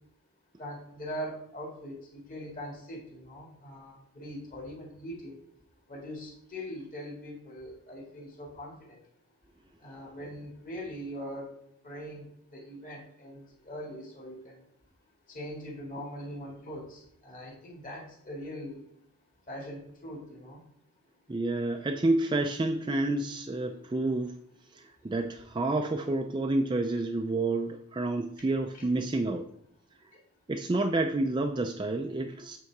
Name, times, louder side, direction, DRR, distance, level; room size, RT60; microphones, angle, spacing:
voice 1, 0.6-2.0 2.3-5.3 5.9-9.0 9.8-11.5 11.8-14.6 15.3-18.8 19.5-20.6 28.7-28.8, equal, 35° left, -2 dB, 2.0 m, -41 dB
voice 2, 21.3-24.4 24.7-29.4 30.5-32.6, right 2 dB, 20° right, 5 dB, 0.3 m, -29 dB
8.2 x 3.7 x 4.6 m, 0.70 s
head